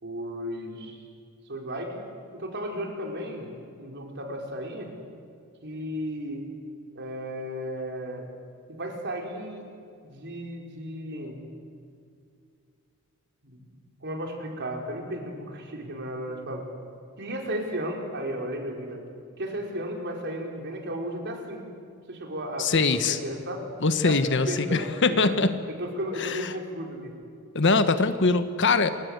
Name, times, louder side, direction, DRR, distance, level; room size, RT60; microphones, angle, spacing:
voice 1, 0.0-1.0 1.4-2.0 2.3-3.5 3.8-4.9 5.6-6.4 6.9-8.3 8.7-9.6 10.0-11.4 13.4-13.6 14.0-16.6 17.2-19.0 19.4-21.6 22.1-23.7 24.0-25.4 25.8-27.1, equal, 50° right, 1 dB, 5.0 m, -34 dB
voice 2, 22.6-23.2 23.8-25.5 26.2-26.4 27.5-28.9, left 3 dB, 55° left, 10 dB, 1.4 m, -22 dB
28.0 x 24.0 x 8.2 m, 2.4 s
head